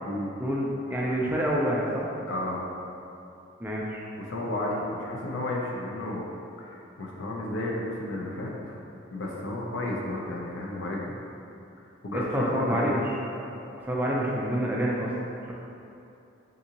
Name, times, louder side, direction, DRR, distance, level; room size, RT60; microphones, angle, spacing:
voice 1, 0.4-2.1 3.6-4.0 12.1-13.5 13.8-15.1, equal, 10° right, -4 dB, 0.3 m, -28 dB
voice 2, 2.3-2.7 4.3-6.2 6.6-8.8 9.1-11.2 12.0-12.9, left 1 dB, 70° left, -2 dB, 0.5 m, -32 dB
3.7 x 2.6 x 2.8 m, 2.8 s
head